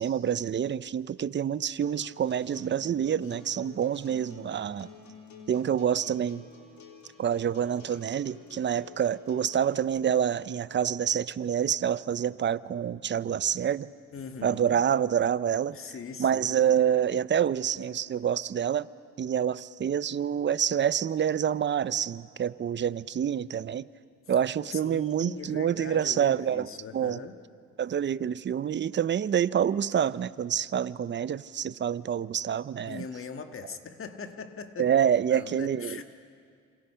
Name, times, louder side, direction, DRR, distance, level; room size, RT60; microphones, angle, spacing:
voice 1, 0.0-4.9 5.5-6.5 7.2-13.9 14.4-15.8 16.2-18.9 19.2-23.9 24.3-27.2 27.8-33.0 34.8-36.0, right 9 dB, 40° right, 17 dB, 0.6 m, -27 dB
Acoustic guitar, 1.8-9.8, left 5 dB, 70° left, 3.7 m, -50 dB
voice 2, 14.1-14.8 15.7-16.6 24.7-27.4 32.8-34.9 35.3-36.0, left 5 dB, 45° left, 6 dB, 1.7 m, -41 dB
27.5 x 27.5 x 5.7 m, 2.3 s
cardioid pair, 90°, 30 cm